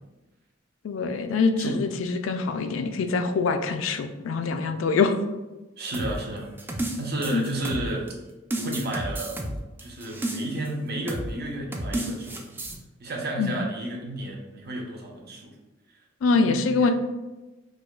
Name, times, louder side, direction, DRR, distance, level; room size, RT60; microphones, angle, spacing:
voice 1, 0.8-5.2 7.3-7.5 13.4-13.6 16.2-16.9, left 4 dB, 80° left, 7 dB, 0.3 m, -24 dB
voice 2, 5.8-6.5 7.0-8.1 8.6-9.6 9.8-12.6 13.0-15.5 16.3-16.9, right 1 dB, 55° right, 0 dB, 0.7 m, -32 dB
sound 1, 5.9-8.1 8.5-10.7 11.1-11.3 11.7-12.8, right 1 dB, 10° right, 0.3 m, -31 dB
4.7 x 2.1 x 2.3 m, 1.1 s
head